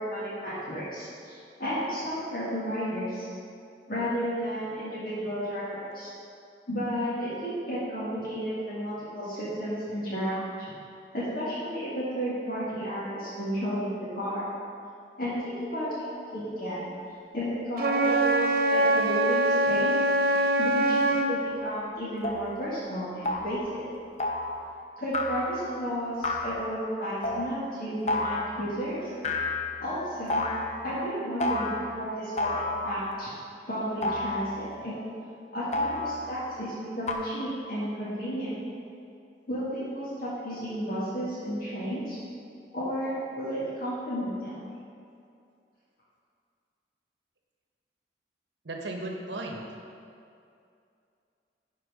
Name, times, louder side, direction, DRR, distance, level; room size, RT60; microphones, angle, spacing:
voice 1, 0.0-3.3 3.9-6.1 6.7-10.4 11.1-14.4 15.2-16.9 17.3-20.0 20.6-23.9 25.0-29.1 29.8-30.4 30.8-33.3 33.7-34.9 35.5-38.5 39.5-42.2 42.7-44.7, equal, 55° left, -10 dB, 1.9 m, -32 dB
Wind instrument woodwind instrument, 17.8-21.3, right 1 dB, 55° right, 0.6 m, -23 dB
sound 1, 21.5-21.6 22.2-22.5 23.2-23.6 24.2-24.6 25.1-25.6 26.2-26.6 27.2-27.5 28.1-28.6 29.2-29.9 30.3-30.8 31.4-31.9 32.4-33.1 34.0-34.7 35.7-36.4 37.1-37.2, left 2 dB, 40° left, 0.7 m, -30 dB
voice 2, 48.6-49.7, right 2 dB, 80° right, 1 dB, 1.0 m, -36 dB
10.5 x 4.4 x 5.0 m, 2.5 s
head